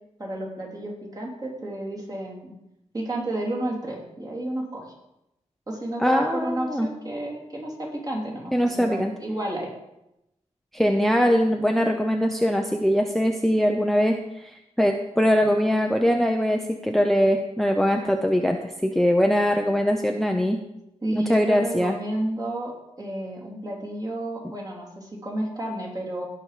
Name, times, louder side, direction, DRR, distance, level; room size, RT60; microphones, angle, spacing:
voice 1, 0.2-2.5 2.9-4.8 5.7-9.7 21.0-26.3, right 1 dB, 30° right, -3 dB, 3.2 m, -31 dB
voice 2, 6.0-6.9 8.5-9.2 10.7-20.6 21.1-22.0, equal, ahead, 4 dB, 0.7 m, -22 dB
16.5 x 5.9 x 5.0 m, 0.88 s
wide cardioid pair, 110°, 12 cm